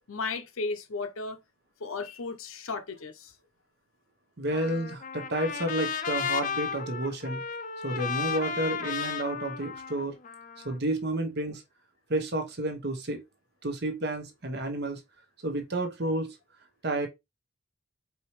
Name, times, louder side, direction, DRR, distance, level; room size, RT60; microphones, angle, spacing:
voice 1, 0.1-1.4 1.8-3.3, left 3 dB, 70° left, 0.8 m, -35 dB
voice 2, 4.4-7.4 7.8-10.1 10.6-11.6 12.1-13.2 13.6-15.0 15.4-16.4 16.8-17.1, right 1 dB, 50° right, 1.0 m, -30 dB
Trumpet, 4.5-10.8, left 6 dB, 35° left, 0.4 m, -34 dB
4.7 x 2.9 x 3.0 m
head